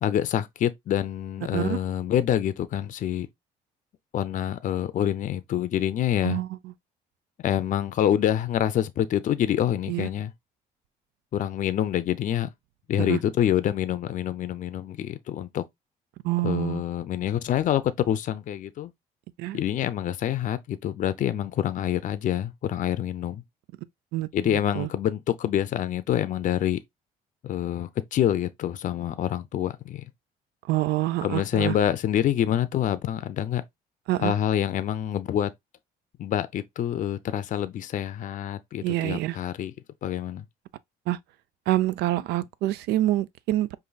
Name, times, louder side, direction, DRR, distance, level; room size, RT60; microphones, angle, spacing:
voice 1, 0.0-3.3 4.1-6.4 7.4-10.3 11.3-12.5 12.9-15.6 16.4-18.9 19.5-23.4 24.3-26.8 27.4-30.0 31.2-33.6 34.2-35.5 36.2-39.7 40.0-40.4, left 10 dB, 50° left, 0.5 m, -26 dB
voice 2, 16.2-16.8 19.4-19.6 24.1-24.9 30.7-31.8 34.1-34.3 38.8-39.4 41.1-41.2 41.7-43.8, right 16 dB, 80° right, 0.4 m, -26 dB
5.2 x 2.6 x 2.3 m
cardioid pair, 110°, 17 cm